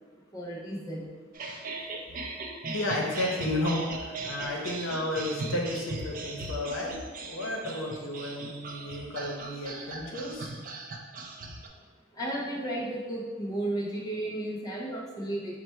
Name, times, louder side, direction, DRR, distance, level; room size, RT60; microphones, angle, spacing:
voice 1, 0.3-1.1 12.1-15.6, right 1 dB, 20° left, -4 dB, 0.4 m, -33 dB
sound 1, 1.3-11.7, right 3 dB, 45° right, 0.4 m, -39 dB
voice 2, 2.7-10.5, left 1 dB, 75° left, -1 dB, 0.8 m, -32 dB
4.1 x 2.1 x 4.4 m, 1.5 s
head